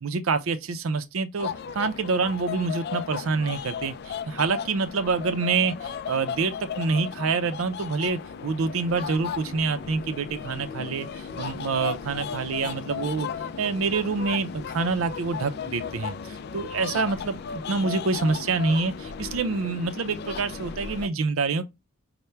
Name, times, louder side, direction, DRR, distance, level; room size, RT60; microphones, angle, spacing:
voice 1, 0.0-13.3 13.6-21.6, right 4 dB, 80° right, 0.5 m, -27 dB
sound 1, 1.4-21.1, left 6 dB, 50° left, 0.3 m, -35 dB
5.6 x 2.1 x 3.2 m
head